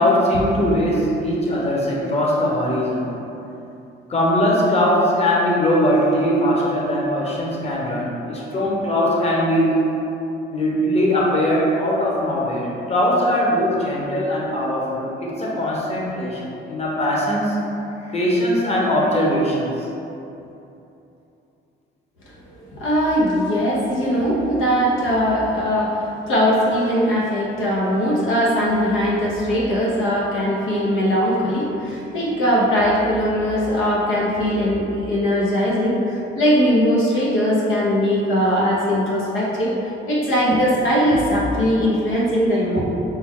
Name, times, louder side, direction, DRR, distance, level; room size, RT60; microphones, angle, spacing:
voice 1, 0.0-3.1 4.1-9.8 10.5-17.7 18.1-19.7, equal, 30° left, -4 dB, 0.9 m, -20 dB
voice 2, 22.6-42.8, equal, 90° left, -5 dB, 0.9 m, -20 dB
5.8 x 2.3 x 3.6 m, 2.9 s
cardioid pair, 90°, 20 cm